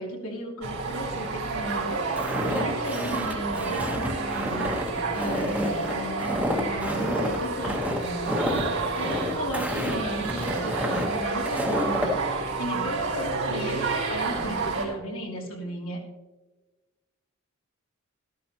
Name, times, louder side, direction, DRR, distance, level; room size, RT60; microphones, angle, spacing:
voice 1, 0.0-4.7 5.1-16.0, equal, 75° left, -1 dB, 2.9 m, -35 dB
sound 1, 0.6-14.9, right 3 dB, 90° right, 3.7 m, -30 dB
Walk footsteps, 2.2-12.1, left 1 dB, 5° right, 1.3 m, -30 dB
voice 2, 5.2-5.6 9.1-9.5 12.7-13.0, right 2 dB, 55° right, 3 dB, 1.4 m, -41 dB
14.0 x 13.0 x 3.0 m, 1.2 s
head